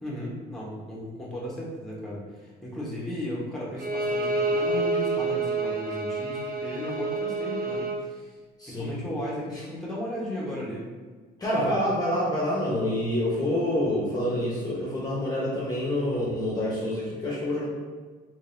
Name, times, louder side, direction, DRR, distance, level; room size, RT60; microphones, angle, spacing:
voice 1, 0.0-8.4 8.7-10.9, left 1 dB, ahead, -5 dB, 1.1 m, -35 dB
Bowed string instrument, 3.8-8.0, right 3 dB, 60° right, 0.6 m, -28 dB
voice 2, 8.6-8.9 11.4-17.7, left 1 dB, 25° left, -6 dB, 0.8 m, -27 dB
3.8 x 2.9 x 2.6 m, 1.4 s
cardioid pair, 110°, 17 cm